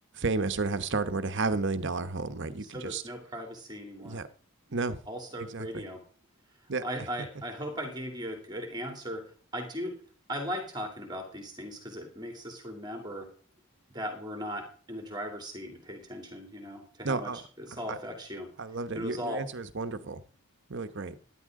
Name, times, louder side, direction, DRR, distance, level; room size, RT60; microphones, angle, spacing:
voice 1, 0.1-3.0 4.0-4.3 4.7-5.0 5.4-5.8 6.7-6.8 17.0-17.4 17.7-18.0 18.6-20.2 20.7-21.1, right 3 dB, 55° right, 0.9 m, -32 dB
voice 2, 2.7-4.2 5.1-6.0 6.8-9.3 9.5-9.9 10.3-13.3 13.9-18.5 18.9-19.4, equal, 20° right, 2.8 m, -38 dB
15.0 x 11.0 x 3.7 m
head